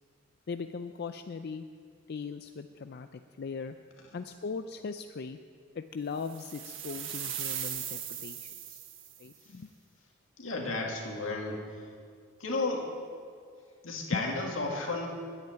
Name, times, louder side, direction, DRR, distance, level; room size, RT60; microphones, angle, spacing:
voice 1, 0.5-1.7 2.1-3.7 4.1-5.4 5.7-8.8 9.2-9.7 14.1-14.3, left 5 dB, 55° left, 8 dB, 0.4 m, -39 dB
sound 1, 6.3-9.3, right 9 dB, 70° right, 1.4 m, -38 dB
voice 2, 10.4-11.6 12.4-12.9 13.8-15.1, left 3 dB, 85° left, 0 dB, 2.2 m, -33 dB
10.5 x 9.0 x 9.1 m, 2.1 s
head